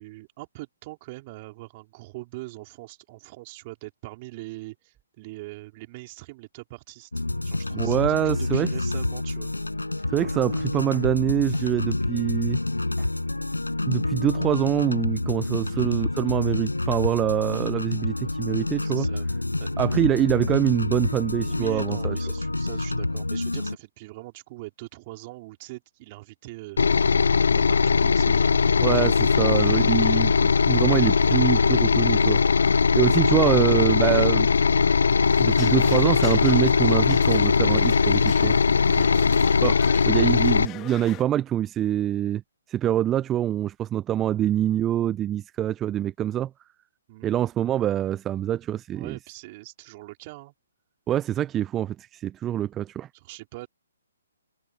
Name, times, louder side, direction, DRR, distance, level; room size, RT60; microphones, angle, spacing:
voice 1, 0.0-9.5 10.0-10.1 15.6-15.9 18.8-19.3 19.6-19.7 21.5-26.8 27.5-30.3 38.8-39.8 44.3-44.5 47.1-47.3 48.9-50.5 53.1-53.7, right 21 dB, 35° right, 4.3 m, -42 dB
sound 1, 7.1-23.8, left 2 dB, 90° left, 5.6 m, -28 dB
voice 2, 7.7-8.7 10.1-12.6 13.0-13.1 13.9-19.1 19.8-22.2 28.8-32.6 32.9-34.5 35.4-38.6 39.6-39.7 40.1-42.4 42.7-46.5 47.2-49.2 51.1-53.1, right 11 dB, 15° right, 0.4 m, -25 dB
sound 2, 26.8-40.7, left 5 dB, 65° left, 0.4 m, -20 dB
sound 3, 35.3-41.2, left 16 dB, 20° left, 1.4 m, -42 dB
figure-of-eight pair, 135°, 0 cm